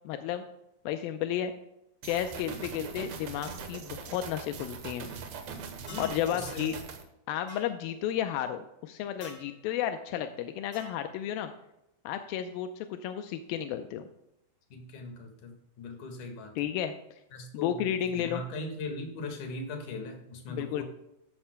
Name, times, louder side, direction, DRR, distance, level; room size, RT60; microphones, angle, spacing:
voice 1, 0.1-0.4 0.9-1.5 2.0-5.1 6.0-6.8 7.3-11.5 12.1-14.1 16.6-16.9 17.5-18.4 20.5-20.8, left 10 dB, 85° left, 7 dB, 2.2 m, -32 dB
sound 1, 2.0-7.0, right 6 dB, 85° right, 1.5 m, -42 dB
voice 2, 5.9-6.7 14.7-16.5 17.3-17.8 18.1-20.8, left 2 dB, 55° left, 3 dB, 2.9 m, -39 dB
sound 2, 5.9-6.3 7.5-7.7 9.2-9.5 10.7-11.0, left 1 dB, 25° left, 2.1 m, -47 dB
13.0 x 12.5 x 2.2 m, 0.85 s
omnidirectional pair, 4.7 m